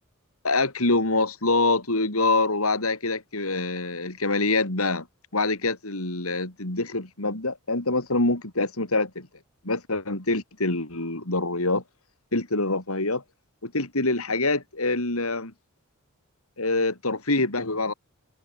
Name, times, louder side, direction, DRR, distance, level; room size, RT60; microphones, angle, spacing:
voice 1, 0.4-5.1 5.3-9.3 9.6-11.8 12.3-13.2 13.6-15.5 16.6-17.9, left 2 dB, 75° left, 4.4 m, -25 dB
head